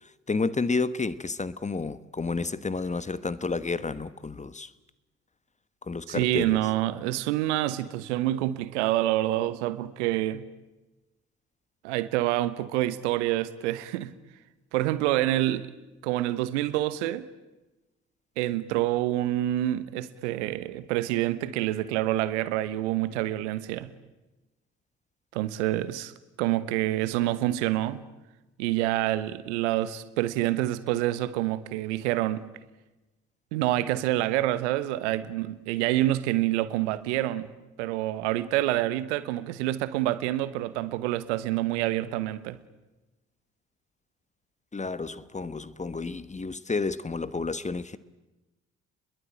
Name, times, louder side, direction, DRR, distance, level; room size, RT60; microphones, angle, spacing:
voice 1, 0.0-4.7 5.8-6.6 44.7-48.0, left 4 dB, 20° left, 1.2 m, -31 dB
voice 2, 6.1-10.4 11.8-14.1 14.7-15.7 16.0-17.3 18.4-23.9 25.3-26.1 26.4-28.0 28.6-32.4 33.5-37.5 37.8-42.6, right 15 dB, 75° right, 1.2 m, -27 dB
29.5 x 22.0 x 8.9 m
figure-of-eight pair, 45°, 36 cm